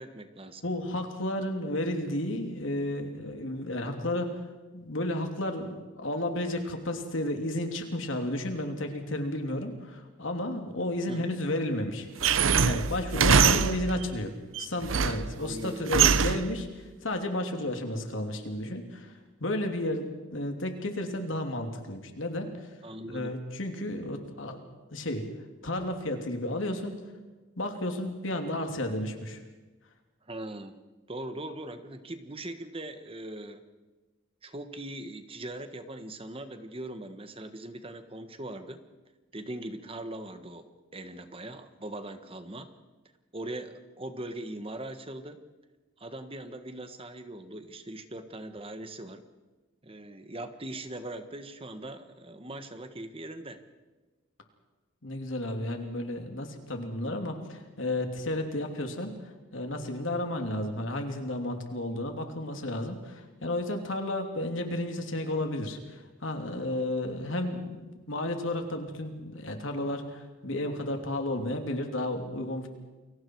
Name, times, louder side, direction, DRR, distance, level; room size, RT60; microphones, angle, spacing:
voice 1, 0.0-0.6 11.1-11.4 15.4-15.8 22.8-23.3 30.3-30.8 31.1-33.6 34.4-38.8 39.3-42.7 43.3-45.4 46.0-49.2 49.8-53.6, right 1 dB, 30° right, 9 dB, 1.5 m, -40 dB
voice 2, 0.6-4.4 4.7-12.1 12.6-19.1 19.4-22.5 23.1-24.6 24.9-25.2 25.6-27.0 27.6-29.4 55.0-72.7, left 1 dB, 75° left, 4 dB, 3.1 m, -32 dB
sound 1, 12.2-14.0 14.5-15.3 15.9-16.6, right 6 dB, 80° right, 0.8 m, -23 dB
29.5 x 23.0 x 4.8 m, 1.2 s
head